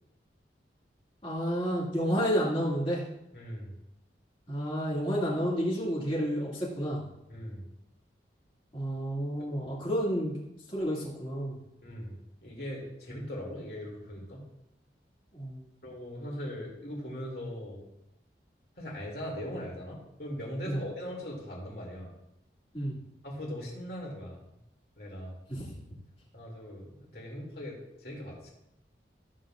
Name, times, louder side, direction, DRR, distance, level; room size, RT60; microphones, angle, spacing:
voice 1, 1.2-3.0 4.5-7.0 8.7-10.4 10.7-11.6 15.3-15.6 20.7-20.8 22.7-23.0 25.5-25.6, equal, 30° left, -6 dB, 2.3 m, -30 dB
voice 2, 3.3-3.7 7.3-7.6 9.4-9.7 11.8-12.1 12.4-14.5 15.8-17.8 18.8-22.1 23.2-24.4 25.0-25.4 26.3-28.5, equal, 55° left, -2 dB, 2.6 m, -40 dB
14.0 x 7.6 x 2.5 m, 0.86 s
head